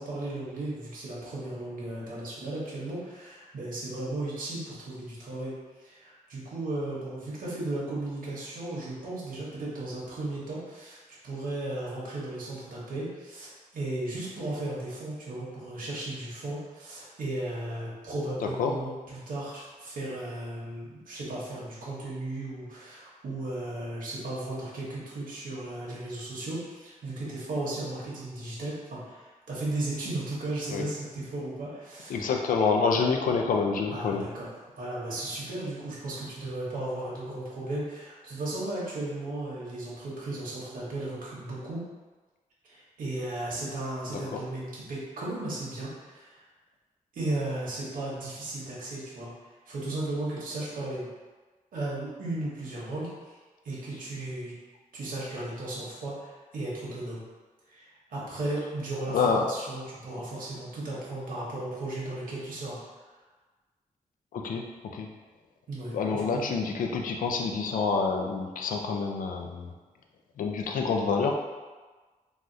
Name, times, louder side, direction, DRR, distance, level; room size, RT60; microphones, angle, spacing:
voice 1, 0.0-5.5 5.8-11.0 11.2-32.3 32.9-33.0 33.9-34.5 34.8-41.8 42.7-46.5 47.1-49.3 49.7-51.1 51.7-53.4 53.6-54.6 54.9-57.2 57.7-62.8 65.7-66.5, right 2 dB, 75° right, -6 dB, 0.9 m, -35 dB
voice 2, 32.1-34.2 44.3-44.4 59.1-59.5 64.3-64.6 64.9-65.1 65.9-69.7 70.4-71.4, left 5 dB, 75° left, 2 dB, 0.4 m, -27 dB
3.4 x 2.3 x 2.6 m, 1.3 s
wide cardioid pair, 170°, 14 cm